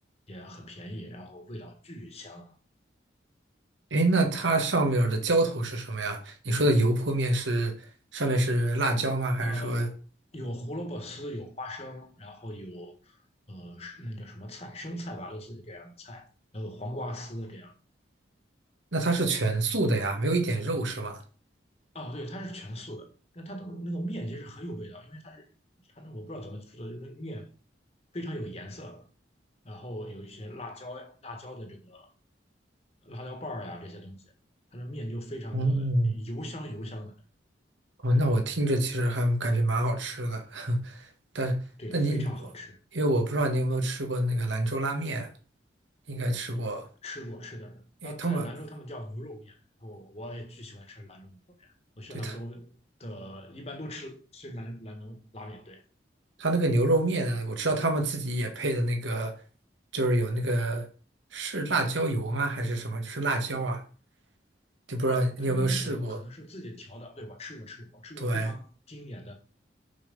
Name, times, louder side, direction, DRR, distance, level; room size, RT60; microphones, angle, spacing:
voice 1, 0.3-2.6 9.4-10.0 10.3-13.2 13.5-16.3 16.5-17.7 21.9-25.4 25.9-27.5 28.1-29.1 29.6-32.1 33.0-34.2 34.7-37.2 41.8-42.8 47.0-49.5 49.8-55.8 65.1-69.3, equal, 35° left, 1.7 m, -40 dB
voice 2, 3.9-7.9 8.1-9.9 18.9-21.2 35.5-36.2 38.0-41.1 41.3-41.6 41.9-42.3 42.9-45.3 46.1-46.9 48.0-48.5 52.1-52.4 56.4-59.3 59.9-60.9 61.3-63.8 64.9-66.2 68.2-68.5, right 1 dB, 90° right, 1.7 m, -27 dB
6.0 x 5.9 x 5.4 m
head